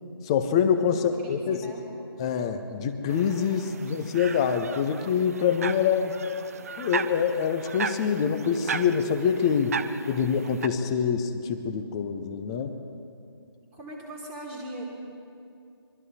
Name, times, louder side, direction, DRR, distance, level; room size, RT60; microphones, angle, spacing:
voice 1, 0.2-1.7 2.2-6.2 6.8-9.8 10.1-12.8, left 7 dB, 10° left, 8 dB, 0.4 m, -25 dB
voice 2, 0.9-1.9 10.1-10.2 13.7-14.9, right 1 dB, 5° right, -5 dB, 1.7 m, -41 dB
sound 1, 3.1-10.7, right 6 dB, 35° right, 0.5 m, -36 dB
23.5 x 12.5 x 4.2 m, 2.5 s
figure-of-eight pair, 155°, 13 cm